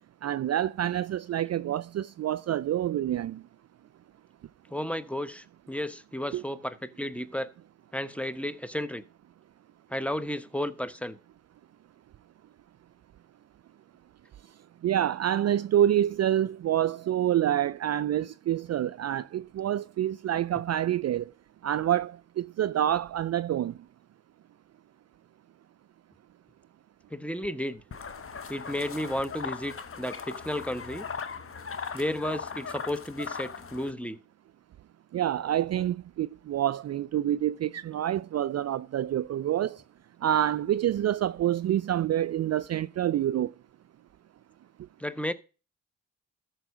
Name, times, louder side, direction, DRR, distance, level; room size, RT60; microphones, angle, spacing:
voice 1, 0.2-3.4 6.3-6.4 14.8-21.3 21.6-23.7 35.1-39.8 40.2-43.5, right 11 dB, 45° right, 0.4 m, -27 dB
voice 2, 4.7-7.5 7.9-9.0 9.9-11.2 27.1-27.8 28.5-31.1 31.9-34.2 45.0-45.3, left 1 dB, 5° left, 1.0 m, -33 dB
sound 1, 27.9-33.9, left 5 dB, 35° left, 1.1 m, -39 dB
13.5 x 4.6 x 6.2 m
hypercardioid pair, 40°, 37 cm